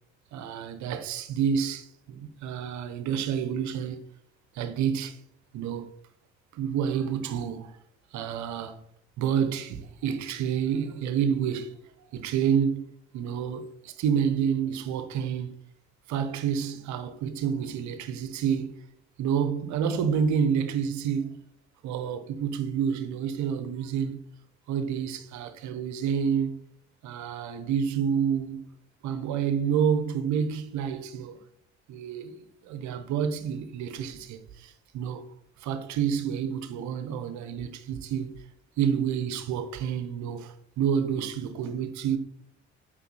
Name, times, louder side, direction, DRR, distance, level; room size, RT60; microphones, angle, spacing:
voice 1, 0.3-4.0 4.5-5.2 5.5-5.9 6.5-7.7 8.1-8.8 9.2-11.8 12.1-15.6 16.1-18.8 19.2-21.4 21.8-24.2 24.7-26.6 27.0-28.7 29.0-31.4 31.9-32.4 32.6-35.3 35.6-38.3 38.8-42.2, right 7 dB, 55° right, 1.0 m, -29 dB
8.1 x 5.2 x 4.2 m
figure-of-eight pair, 45°, 33 cm